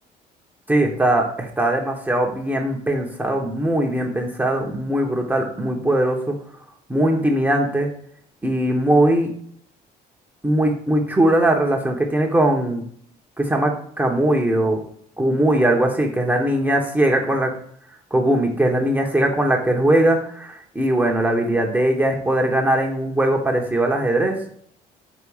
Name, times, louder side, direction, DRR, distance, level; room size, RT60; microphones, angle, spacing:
voice 1, 0.7-6.3 6.9-7.9 8.4-9.3 10.4-12.8 13.4-14.8 15.2-17.5 18.1-24.4, right 1 dB, 10° right, 0 dB, 1.0 m, -20 dB
4.8 x 3.9 x 5.5 m, 0.62 s
cardioid pair, 110°, 17 cm